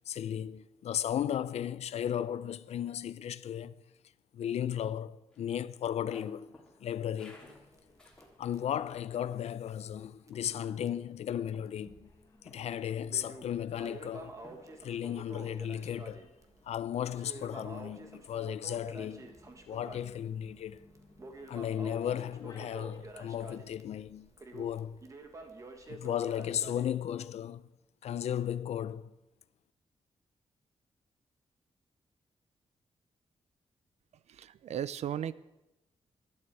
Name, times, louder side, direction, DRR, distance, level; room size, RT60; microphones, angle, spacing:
voice 1, 0.1-3.8 4.3-7.5 8.4-12.1 12.4-14.4 14.8-16.3 16.6-19.4 19.7-20.9 21.5-25.0 25.9-27.7 28.0-29.1, left 10 dB, 80° left, 0.6 m, -35 dB
sound 1, 5.3-8.7 9.1-9.8 10.3-11.0 11.5-12.2 12.5-12.8 13.4-13.8 14.4-15.0 15.4-15.7, left 1 dB, 10° left, 3.2 m, -58 dB
sound 2, 6.4-23.0, left 3 dB, 30° left, 2.0 m, -64 dB
Crackle, 7.4-10.0 10.3-10.4 10.9-11.0 11.7-12.3 12.6-26.9, right 2 dB, 30° right, 1.6 m, -49 dB
voice 2, 34.3-35.3, right 10 dB, 85° right, 0.6 m, -36 dB
19.5 x 12.0 x 4.8 m
wide cardioid pair, 180°, 11 cm